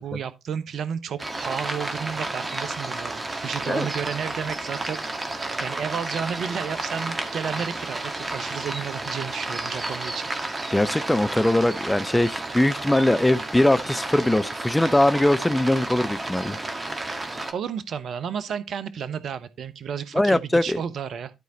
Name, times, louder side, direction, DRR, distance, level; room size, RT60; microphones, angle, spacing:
voice 1, 0.0-10.2 17.1-17.2 17.5-21.3, right 7 dB, 60° right, 1.0 m, -32 dB
sound 1, 1.2-17.5, right 2 dB, 25° right, 1.9 m, -32 dB
voice 2, 10.7-16.6 20.1-20.8, left 1 dB, 10° left, 0.8 m, -21 dB
11.5 x 4.8 x 4.0 m
hypercardioid pair, 40°, 0 cm